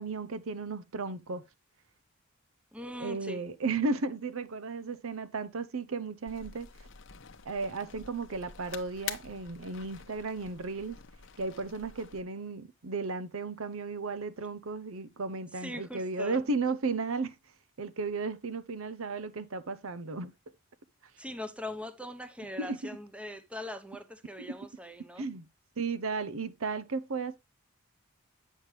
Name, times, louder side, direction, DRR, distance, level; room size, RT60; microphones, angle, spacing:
voice 1, 0.0-1.4 3.0-6.7 7.4-11.0 11.4-17.4 17.8-20.3 22.6-22.8 24.4-24.6 25.2-25.5 25.8-27.4, right 4 dB, 65° right, 0.7 m, -34 dB
voice 2, 2.7-3.4 15.5-16.5 21.2-25.3, left 1 dB, 5° right, 0.8 m, -41 dB
sound 1, 6.3-12.2, left 8 dB, 60° left, 0.8 m, -46 dB
8.9 x 6.4 x 3.2 m
head